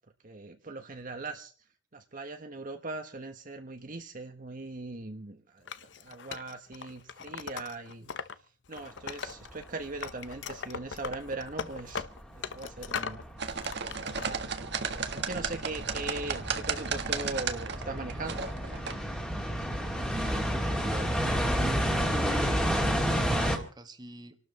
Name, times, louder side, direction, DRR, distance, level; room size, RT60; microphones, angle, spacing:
voice 1, 0.2-1.5 1.9-12.0 12.3-13.3 13.6-14.4 14.8-18.5, right 2 dB, 45° right, 6 dB, 1.2 m, -40 dB
Wood, 5.7-8.3 8.7-9.7 10.0-13.2 13.6-14.3, left 6 dB, 65° left, 0.8 m, -39 dB
sound 1, 9.5-9.6 10.3-10.4 10.9-11.5 11.9-23.6, equal, 5° left, 2.2 m, -31 dB
sound 2, 13.4-18.9, right 5 dB, 60° right, 1.5 m, -34 dB
voice 2, 20.1-21.2 21.4-24.4, right 1 dB, 20° right, 7 dB, 1.6 m, -41 dB
27.0 x 12.5 x 4.2 m, 0.42 s
head